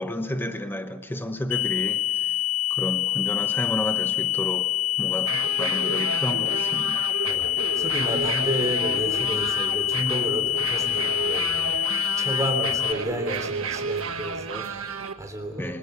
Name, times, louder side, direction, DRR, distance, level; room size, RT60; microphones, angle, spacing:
voice 1, 0.0-2.3 2.7-4.7 5.0-7.1 15.6-15.8, equal, 10° left, 1.0 m, -31 dB
sound 1, 1.5-12.9, left 14 dB, 85° left, 1.5 m, -26 dB
sound 2, 5.2-15.1, right 5 dB, 70° right, 1.5 m, -32 dB
voice 2, 7.3-15.8, right 1 dB, 15° right, 3.3 m, -32 dB
27.0 x 19.5 x 8.2 m
head